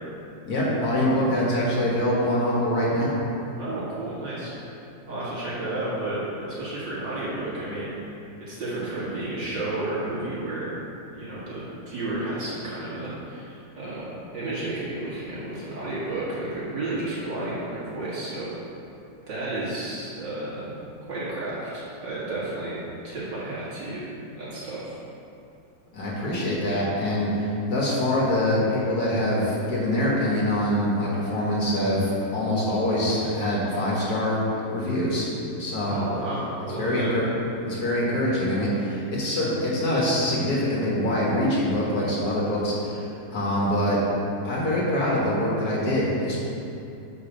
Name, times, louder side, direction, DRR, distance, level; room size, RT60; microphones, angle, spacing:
voice 1, 0.5-3.1 25.9-34.4 34.7-35.3 35.6-36.0 36.8-37.3 37.6-44.0 44.4-46.4, left 1 dB, 55° left, -6 dB, 1.9 m, -24 dB
voice 2, 3.6-4.8 5.1-8.1 8.5-10.8 11.1-18.5 19.3-20.7 21.1-22.8 23.0-24.0 24.4-25.0 35.9-37.1, right 2 dB, 75° right, -9 dB, 2.7 m, -32 dB
6.7 x 5.4 x 5.0 m, 2.7 s
omnidirectional pair, 2.0 m